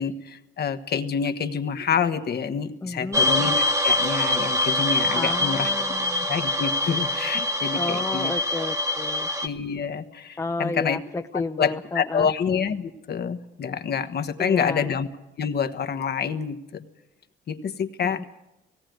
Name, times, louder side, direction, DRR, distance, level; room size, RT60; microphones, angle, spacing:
voice 1, 0.0-5.7 6.2-8.3 9.4-11.0 11.3-15.1 15.4-16.8 17.5-18.2, left 7 dB, 55° left, 8 dB, 1.3 m, -27 dB
voice 2, 2.8-3.3 5.1-6.3 7.7-9.3 10.4-12.3 14.4-14.9 18.0-18.2, left 3 dB, 15° left, 7 dB, 0.7 m, -31 dB
sound 1, 3.1-9.5, left 1 dB, 15° right, 1.4 m, -24 dB
17.5 x 17.5 x 9.2 m, 0.94 s
cardioid pair, 90°, 20 cm